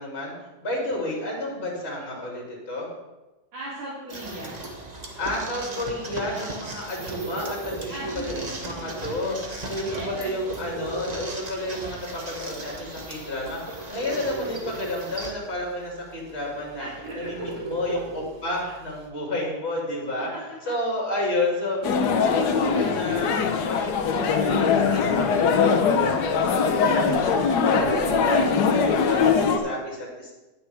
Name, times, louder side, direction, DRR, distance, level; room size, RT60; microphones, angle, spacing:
voice 1, 0.0-2.9 5.2-16.9 17.1-20.3 20.7-30.3, left 1 dB, 35° left, -3 dB, 3.0 m, -31 dB
voice 2, 3.5-4.6 5.5-5.6 7.9-8.6 9.4-10.3 16.8-17.5 20.1-20.2 22.1-22.4, right 1 dB, 75° right, -9 dB, 3.3 m, -38 dB
sound 1, 4.1-15.3, right 2 dB, 25° right, 1.1 m, -38 dB
sound 2, 6.8-19.1, right 2 dB, 45° right, 0.3 m, -39 dB
sound 3, 21.8-29.6, left 5 dB, 65° left, 1.3 m, -21 dB
18.5 x 6.5 x 3.4 m, 1.1 s
omnidirectional pair, 2.1 m